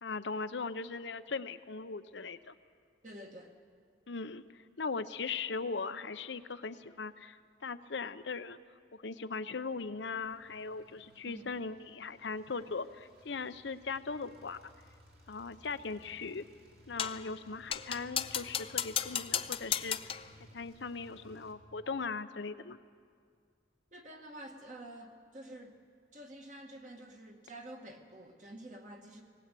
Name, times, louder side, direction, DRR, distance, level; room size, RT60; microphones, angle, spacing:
voice 1, 0.0-2.5 4.1-8.6 8.9-14.6 15.3-16.4 16.9-20.2 20.5-22.8, left 4 dB, 80° left, 12 dB, 0.8 m, -39 dB
voice 2, 3.0-3.5 11.2-11.5 23.9-25.8 26.1-29.2, right 1 dB, 45° right, 2 dB, 2.1 m, -49 dB
sound 1, 9.6-21.5, equal, 60° right, 2.6 m, -60 dB
sound 2, 17.0-17.3 17.7-20.3, left 9 dB, 30° left, 0.5 m, -35 dB
19.5 x 19.0 x 8.4 m, 2.1 s
head